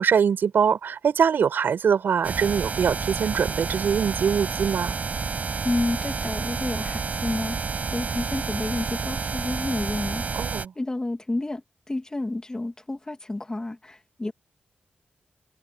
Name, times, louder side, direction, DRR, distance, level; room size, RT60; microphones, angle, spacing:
voice 1, 0.0-5.0 10.3-10.7, right 7 dB, 80° right, 5.1 m, -23 dB
sound 1, 2.2-10.6, right 5 dB, 50° right, 5.6 m, -30 dB
voice 2, 5.6-7.6 7.9-10.2 10.8-11.6 11.9-14.3, left 2 dB, 20° left, 3.0 m, -30 dB
wide cardioid pair, 105°, 3 cm